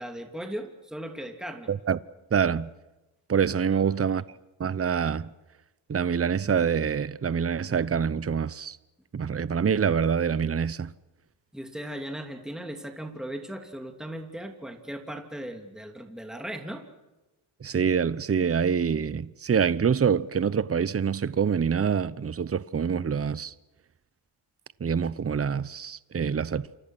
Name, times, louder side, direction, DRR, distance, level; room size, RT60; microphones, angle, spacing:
voice 1, 0.0-1.7 3.7-4.2 11.5-16.8, right 1 dB, ahead, 2.9 m, -38 dB
voice 2, 1.7-2.0 2.3-2.7 3.3-4.2 4.6-5.3 5.9-8.8 9.1-10.9 17.6-23.5 24.8-26.7, right 7 dB, 30° right, 0.8 m, -26 dB
29.0 x 25.0 x 6.2 m
cardioid pair, 80°, 47 cm